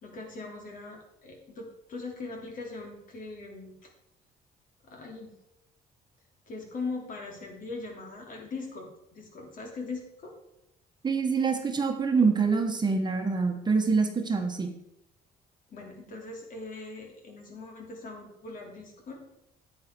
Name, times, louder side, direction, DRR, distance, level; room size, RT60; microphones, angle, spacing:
voice 1, 0.0-3.7 4.8-5.3 6.5-10.3 15.7-19.2, left 3 dB, 55° left, 1 dB, 3.0 m, -40 dB
voice 2, 11.0-14.7, right 4 dB, 25° right, 4 dB, 1.4 m, -25 dB
9.7 x 8.7 x 4.6 m, 0.82 s
cardioid pair, 110°, 17 cm